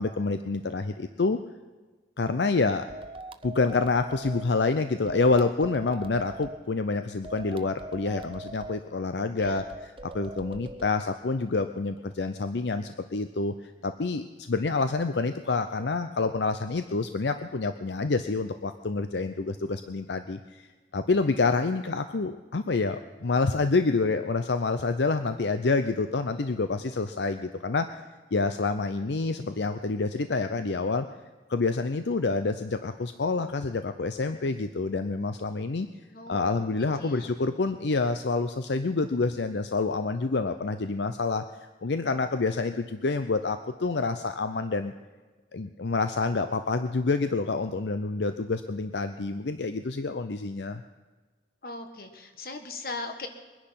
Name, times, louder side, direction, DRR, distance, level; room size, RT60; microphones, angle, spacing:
voice 1, 0.0-1.4 2.2-2.9 3.4-9.6 10.0-20.6 20.9-28.0 28.3-31.1 31.5-35.9 36.3-41.4 41.8-44.9 45.5-50.8, left 3 dB, 75° left, 9 dB, 0.6 m, -27 dB
sound 1, 2.9-4.4 5.1-6.6 7.2-8.8 9.4-10.9, right 1 dB, 30° right, 0.6 m, -41 dB
voice 2, 9.4-9.7 36.1-36.6 36.9-37.4 51.6-53.3, left 3 dB, 55° left, 7 dB, 1.6 m, -39 dB
22.5 x 10.5 x 5.8 m, 1.3 s
head